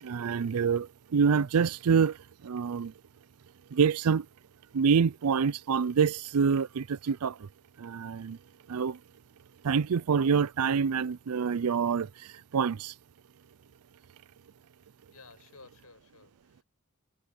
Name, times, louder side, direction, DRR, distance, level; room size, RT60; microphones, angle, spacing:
voice 1, 0.0-2.2 2.4-2.9 3.7-4.3 4.7-7.5 7.8-8.4 8.7-9.0 9.6-12.9, right 6 dB, 80° right, 0.5 m, -26 dB
voice 2, 14.8-16.6, left 3 dB, 75° left, 7.2 m, -55 dB
head